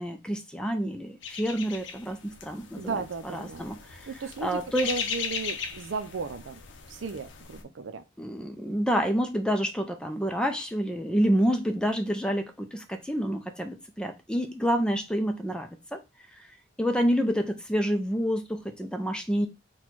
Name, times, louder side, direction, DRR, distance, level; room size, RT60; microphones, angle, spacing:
voice 1, 0.0-3.0 3.3-3.8 4.4-4.9 8.2-16.0 16.8-19.5, equal, 5° left, 0.5 m, -28 dB
sound 1, 1.2-7.6, left 6 dB, 75° left, 0.6 m, -38 dB
voice 2, 2.8-3.6 4.1-6.6 6.9-8.0, right 4 dB, 85° right, 0.5 m, -35 dB
4.2 x 2.3 x 4.4 m
head